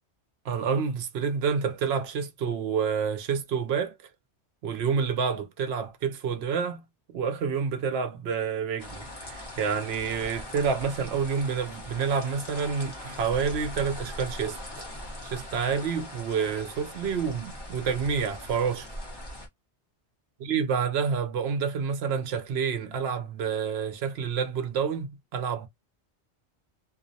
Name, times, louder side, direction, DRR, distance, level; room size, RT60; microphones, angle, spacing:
voice 1, 0.4-4.0 4.6-6.8 7.1-14.9 15.2-18.9 20.4-25.7, right 6 dB, 70° right, 0.8 m, -28 dB
sound 1, 8.8-19.5, left 1 dB, 25° left, 0.7 m, -40 dB
2.4 x 2.0 x 2.6 m
omnidirectional pair, 1.2 m